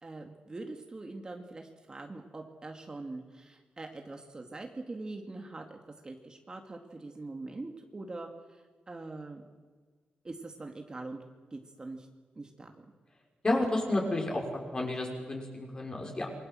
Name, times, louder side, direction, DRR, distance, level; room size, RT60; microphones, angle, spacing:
voice 1, 0.0-5.8 6.0-9.4 10.2-11.2 11.5-12.1 12.4-12.9, right 2 dB, 25° right, 3 dB, 2.4 m, -43 dB
voice 2, 13.4-14.5 14.7-16.3, left 2 dB, 25° left, 1 dB, 6.0 m, -31 dB
28.0 x 23.0 x 7.8 m, 1.4 s
wide cardioid pair, 125°, 3 cm